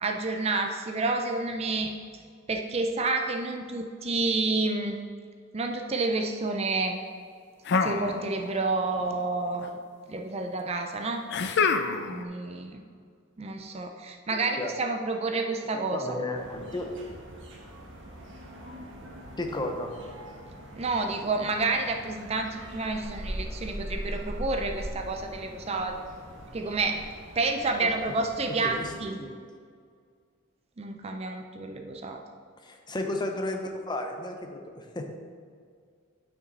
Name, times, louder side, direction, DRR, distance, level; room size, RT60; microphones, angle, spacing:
voice 1, 0.0-1.9 2.5-5.0 5.5-7.0 7.8-9.7 10.1-11.7 12.1-12.8 13.4-16.0 20.8-26.0 26.5-27.0 27.3-29.2 30.8-32.2, right 3 dB, 30° right, 5 dB, 0.4 m, -29 dB
sound 1, 7.7-8.7 8.9-9.7 11.3-12.2, left 4 dB, 55° left, 0.4 m, -27 dB
voice 2, 14.3-14.7 15.7-16.9 19.4-19.9 27.8-28.2 28.6-28.9 29.2-29.3 32.6-35.1, left 1 dB, 20° left, 4 dB, 0.7 m, -33 dB
sound 2, 16.3-29.0, equal, 60° right, 1.2 m, -41 dB
9.0 x 6.0 x 4.0 m, 2.1 s
head